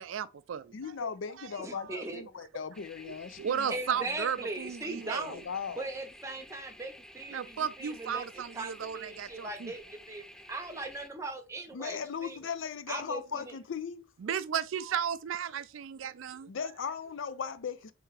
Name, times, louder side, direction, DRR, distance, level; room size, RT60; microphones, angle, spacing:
voice 1, 0.0-1.1 1.4-1.5 1.7-2.0 3.4-5.3 7.3-9.7 14.2-16.5, right 8 dB, 70° right, 0.4 m, -35 dB
voice 2, 0.7-3.8 5.2-5.8 11.7-14.1 16.5-17.9, left 6 dB, 65° left, 0.4 m, -38 dB
voice 3, 1.6-2.2 3.7-5.4 5.7-12.4 12.9-13.6, right 2 dB, 15° right, 0.8 m, -39 dB
sound 1, 2.7-11.1, left 1 dB, 5° left, 0.3 m, -52 dB
4.4 x 3.5 x 3.2 m
head